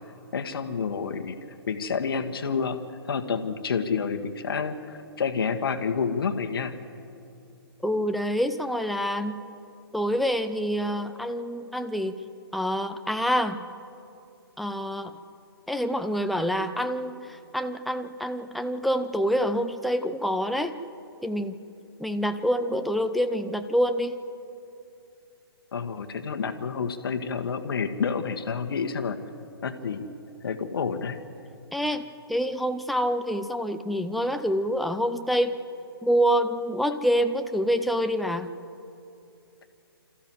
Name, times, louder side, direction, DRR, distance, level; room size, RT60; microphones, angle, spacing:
voice 1, 0.3-1.4 1.7-2.8 3.1-6.7 25.7-29.2 29.6-30.1 30.4-31.2, left 5 dB, 65° left, 6 dB, 1.4 m, -29 dB
voice 2, 7.8-9.4 9.9-12.2 12.5-13.7 14.6-15.2 15.7-20.7 21.2-21.6 22.0-24.2 31.7-35.6 36.0-38.5, equal, ahead, 7 dB, 0.6 m, -26 dB
26.5 x 14.0 x 7.6 m, 2.7 s
figure-of-eight pair, 135°, 13 cm